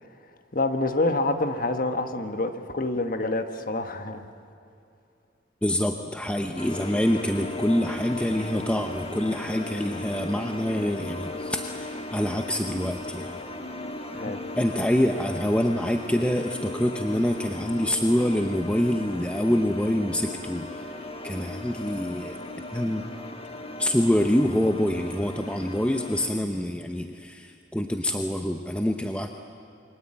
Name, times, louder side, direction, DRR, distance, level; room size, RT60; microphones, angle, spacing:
voice 1, 0.5-4.2 14.1-14.4 21.7-21.8, left 2 dB, 45° left, 7 dB, 1.4 m, -27 dB
voice 2, 5.6-13.4 14.6-20.9 21.2-22.4 22.7-23.1 23.8-29.3, equal, 5° left, 4 dB, 0.9 m, -26 dB
sound 1, 6.6-26.3, left 2 dB, 30° left, 1.8 m, -37 dB
28.5 x 23.5 x 8.8 m, 2.5 s
head